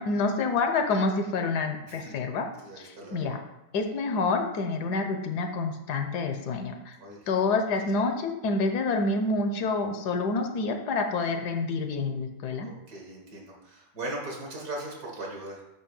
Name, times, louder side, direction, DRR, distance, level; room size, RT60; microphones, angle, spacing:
voice 1, 0.0-2.5 2.8-3.4 3.7-7.0 7.3-12.7, left 3 dB, 85° left, 5 dB, 1.4 m, -28 dB
voice 2, 2.6-3.4 7.0-7.2 12.6-15.6, right 2 dB, 70° right, -2 dB, 2.3 m, -39 dB
8.8 x 3.0 x 6.4 m, 0.91 s
omnidirectional pair, 1.7 m